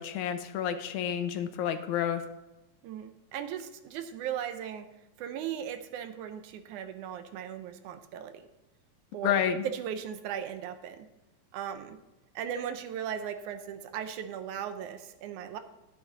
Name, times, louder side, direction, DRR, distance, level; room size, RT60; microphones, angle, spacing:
voice 1, 0.0-2.2 9.2-9.6, left 9 dB, 80° left, 10 dB, 2.0 m, -29 dB
voice 2, 2.8-4.9 5.2-8.4 9.1-11.1 11.5-12.0 12.4-15.6, right 9 dB, 80° right, 8 dB, 2.2 m, -37 dB
11.5 x 8.9 x 4.1 m, 0.99 s
omnidirectional pair, 3.5 m